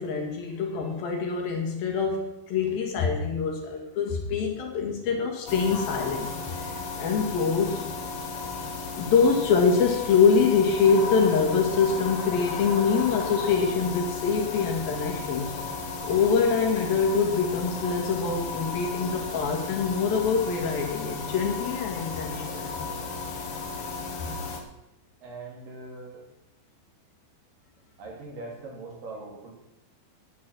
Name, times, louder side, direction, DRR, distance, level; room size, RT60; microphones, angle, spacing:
voice 1, 0.0-6.3 6.6-6.7 7.0-7.9 9.0-15.5 16.0-22.7, left 5 dB, 80° left, 1 dB, 3.8 m, -24 dB
sound 1, 5.5-24.6, left 4 dB, 55° left, 1.7 m, -34 dB
voice 2, 25.2-26.2 28.0-29.5, right 3 dB, 70° right, 0 dB, 4.2 m, -41 dB
11.0 x 9.6 x 6.3 m, 0.91 s
omnidirectional pair, 4.1 m